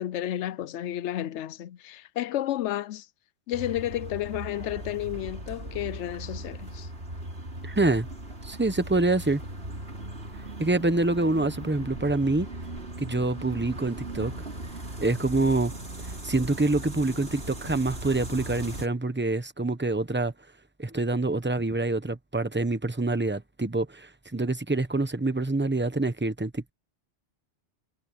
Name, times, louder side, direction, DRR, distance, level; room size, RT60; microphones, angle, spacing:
voice 1, 0.0-3.1 3.5-6.9, left 13 dB, 85° left, 0.9 m, -32 dB
sound 1, 3.5-18.9, right 1 dB, 60° right, 4.7 m, -38 dB
voice 2, 7.6-8.1 8.4-9.4 10.6-12.5 13.0-14.3 15.0-15.7 16.2-20.3 20.8-26.7, right 2 dB, 10° right, 1.0 m, -26 dB
omnidirectional pair, 1.2 m